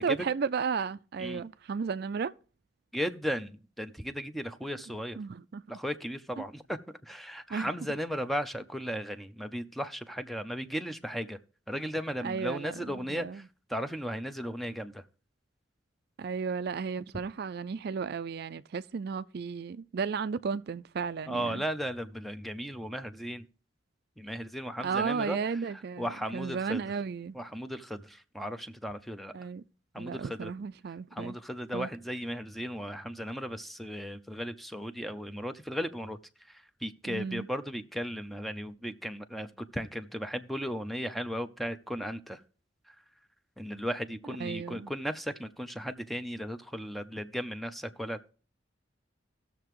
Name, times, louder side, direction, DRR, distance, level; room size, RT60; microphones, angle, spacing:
voice 1, 0.0-2.3 5.2-5.6 6.4-6.5 7.5-7.7 12.2-13.4 16.2-21.6 24.8-27.4 29.3-29.6 30.0-31.4 31.7-31.9 37.1-37.5 44.4-44.9, right 5 dB, 60° right, 0.4 m, -34 dB
voice 2, 2.9-5.2 5.7-11.4 11.7-13.4 13.7-15.0 21.3-23.4 24.2-25.4 26.0-26.8 27.3-29.3 29.9-30.5 31.1-36.2 36.8-42.4 43.6-48.3, equal, ahead, 0.6 m, -36 dB
18.0 x 6.7 x 3.1 m
head